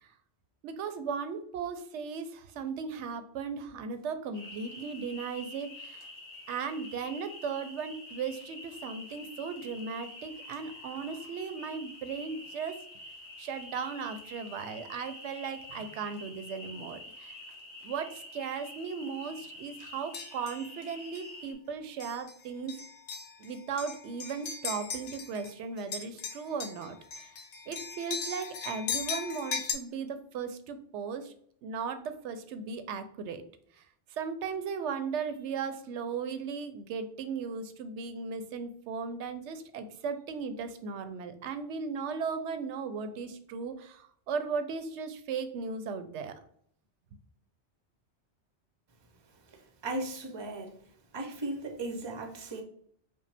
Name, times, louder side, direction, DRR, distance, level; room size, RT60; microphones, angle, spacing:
voice 1, 0.6-6.0 6.5-12.7 13.4-17.3 17.8-22.8 23.4-27.0 27.7-31.3 31.6-33.4 34.2-46.3, right 5 dB, 80° right, 0.9 m, -37 dB
sound 1, 4.3-21.5, left 2 dB, 70° left, 1.4 m, -47 dB
sound 2, 20.1-20.6 21.2-21.3 22.0-22.3 22.7-25.5 25.8-29.7, left 6 dB, 85° left, 0.9 m, -38 dB
voice 2, 49.8-50.7 51.1-52.6, right 2 dB, 30° right, 0.6 m, -36 dB
5.2 x 2.1 x 3.3 m
omnidirectional pair, 1.2 m